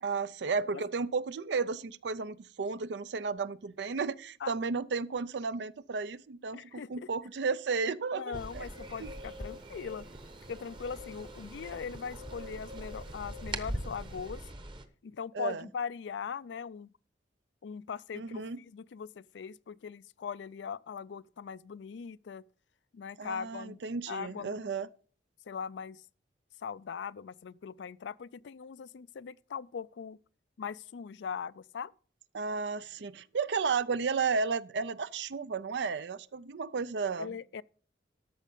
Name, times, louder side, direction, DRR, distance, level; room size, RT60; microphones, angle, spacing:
voice 1, 0.0-8.7 9.0-9.1 15.3-15.6 18.1-18.6 23.2-24.9 32.3-37.3, right 5 dB, 80° right, 0.5 m, -33 dB
voice 2, 6.5-7.1 8.2-10.1 10.5-14.5 15.0-16.9 17.6-22.4 22.9-23.8 24.1-24.5 25.5-26.0 26.6-30.2 30.6-31.9 37.2-37.6, left 6 dB, 85° left, 0.4 m, -40 dB
sound 1, 8.3-14.9, right 1 dB, 25° right, 0.9 m, -42 dB
sound 2, 8.3-14.4, left 2 dB, 60° right, 3.9 m, -51 dB
13.0 x 6.5 x 5.3 m
head